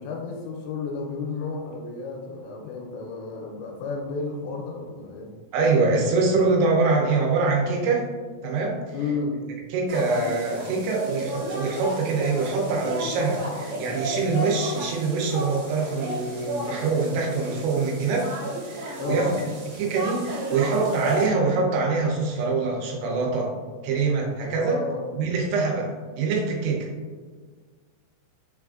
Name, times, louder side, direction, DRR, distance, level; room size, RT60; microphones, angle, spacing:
voice 1, 0.0-5.3 8.9-9.4 19.0-19.4 24.6-25.1, left 4 dB, 85° left, -1 dB, 2.7 m, -32 dB
voice 2, 5.5-8.1 8.4-8.8 9.7-18.3 18.7-19.4 19.8-23.5 23.8-24.8 25.2-26.9, right 4 dB, 90° right, -1 dB, 3.0 m, -24 dB
sound 1, 9.9-21.3, right 1 dB, 75° right, 2.1 m, -33 dB
6.4 x 2.4 x 2.3 m, 1.5 s
omnidirectional pair, 5.0 m